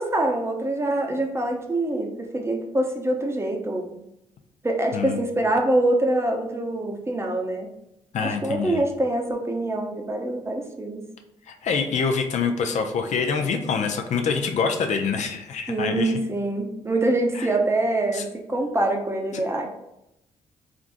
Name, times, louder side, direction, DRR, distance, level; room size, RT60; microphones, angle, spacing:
voice 1, 0.0-4.0 4.6-7.7 8.2-11.0 15.7-19.7, right 1 dB, 20° right, 2 dB, 0.6 m, -25 dB
voice 2, 8.1-8.9 11.5-16.2 17.3-17.5 18.1-18.2, left 5 dB, 65° left, 4 dB, 0.5 m, -25 dB
3.4 x 2.5 x 2.5 m, 0.85 s
cardioid pair, 75°, 13 cm